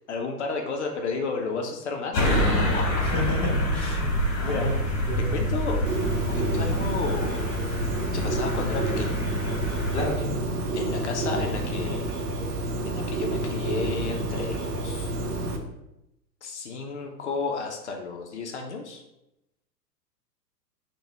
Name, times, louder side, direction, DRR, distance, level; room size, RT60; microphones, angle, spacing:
voice 1, 0.1-2.2 2.5-2.9 4.4-4.7 5.3-5.8 6.3-7.5 8.1-9.2 10.7-12.1 12.8-15.2 16.4-19.0, left 4 dB, 45° left, 3 dB, 0.4 m, -32 dB
sound 1, 2.1-10.1, equal, 30° left, 1.0 m, -27 dB
voice 2, 3.0-4.0 4.3-4.7 5.1-5.4 9.9-10.5, equal, 10° left, -4 dB, 0.7 m, -30 dB
Bird, 5.9-15.6, right 2 dB, 65° right, 0.7 m, -29 dB
3.3 x 2.2 x 3.3 m, 0.90 s
figure-of-eight pair, 105°, 50 cm